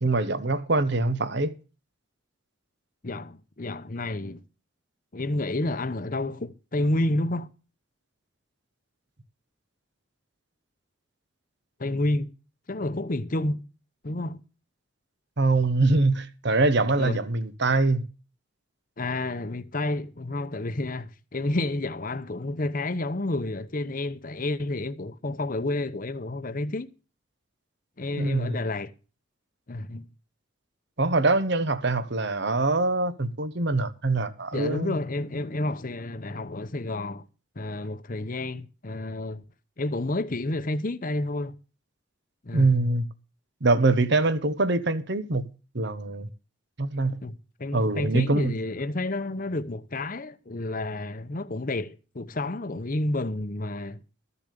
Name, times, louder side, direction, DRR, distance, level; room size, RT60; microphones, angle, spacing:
voice 1, 0.0-1.5 15.4-18.0 28.2-28.6 31.0-35.0 42.5-43.0 43.6-45.5 45.7-46.3 46.8-47.2 47.7-48.5, right 2 dB, 55° right, 1.0 m, -24 dB
voice 2, 3.0-4.4 5.1-7.5 11.8-12.3 12.7-13.6 14.0-14.4 17.0-17.2 19.0-26.9 28.0-28.9 29.7-30.1 34.5-37.2 37.6-39.4 39.8-41.5 42.4-42.9 47.2-54.0, left 2 dB, 45° left, 0.8 m, -30 dB
13.5 x 7.0 x 6.7 m
head